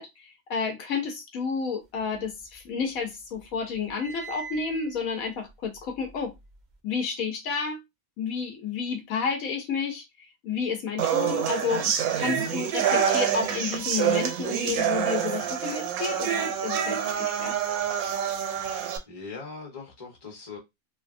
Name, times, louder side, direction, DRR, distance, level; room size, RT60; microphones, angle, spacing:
voice 1, 0.0-6.3 6.8-7.8 8.2-17.6, left 5 dB, 70° left, 1.0 m, -31 dB
sound 1, 2.0-3.0 3.3-6.7, right 5 dB, 55° right, 0.5 m, -45 dB
sound 2, 11.0-19.0, right 8 dB, 75° right, 1.0 m, -27 dB
voice 2, 19.1-20.6, left 4 dB, 20° left, 0.9 m, -40 dB
3.3 x 2.2 x 2.5 m
omnidirectional pair, 1.6 m